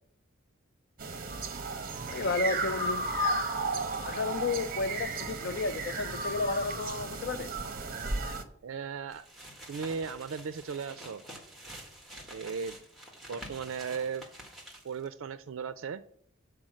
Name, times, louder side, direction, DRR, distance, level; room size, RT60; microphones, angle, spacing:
sound 1, 1.0-8.4, right 2 dB, 40° right, 0.9 m, -34 dB
voice 1, 2.1-3.0 4.0-7.5, left 4 dB, 50° left, 12 dB, 0.4 m, -32 dB
voice 2, 8.6-9.3 9.7-11.2 12.3-12.8 13.3-14.2 14.8-16.0, right 6 dB, 75° right, 13 dB, 0.4 m, -36 dB
sound 2, 9.1-15.1, right 1 dB, ahead, 1.5 m, -48 dB
7.6 x 4.8 x 7.3 m, 0.65 s
head